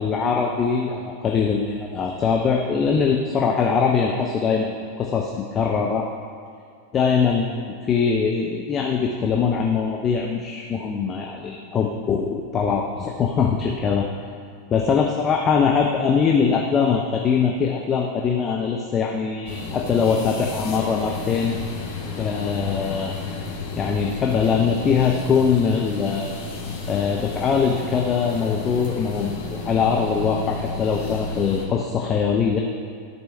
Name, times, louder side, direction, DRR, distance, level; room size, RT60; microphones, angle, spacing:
voice 1, 0.0-6.1 6.9-7.5 7.9-14.1 14.7-21.6 22.2-23.1 23.8-26.3 26.9-32.6, left 6 dB, 25° left, 0 dB, 0.6 m, -22 dB
sound 1, 19.5-31.7, left 3 dB, 55° left, 1.6 m, -32 dB
13.5 x 4.5 x 3.4 m, 2.3 s
figure-of-eight pair, 90°, 0 cm